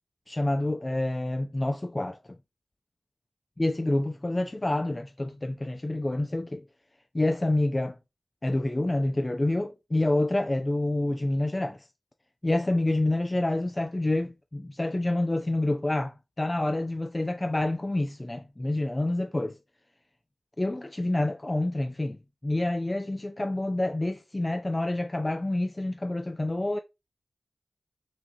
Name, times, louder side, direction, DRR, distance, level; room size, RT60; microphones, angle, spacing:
voice 1, 0.3-2.2 3.6-6.6 7.1-8.0 8.4-11.8 12.4-19.6 20.6-22.2 22.4-26.8, left 2 dB, 25° left, 0.4 m, -28 dB
5.6 x 2.6 x 2.8 m
cardioid pair, 55°, 0 cm